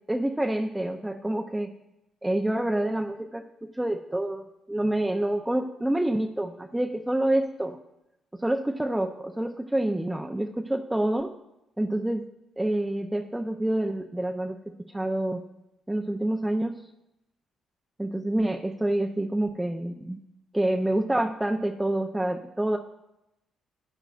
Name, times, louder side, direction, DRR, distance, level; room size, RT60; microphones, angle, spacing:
voice 1, 0.1-1.7 2.2-3.5 3.8-7.8 8.4-11.3 11.8-12.3 12.6-14.6 14.9-15.4 15.9-16.8 18.0-20.2 20.5-22.8, right 1 dB, 10° right, 4 dB, 0.6 m, -27 dB
14.0 x 8.7 x 2.5 m, 0.88 s
cardioid pair, 85°, 0 cm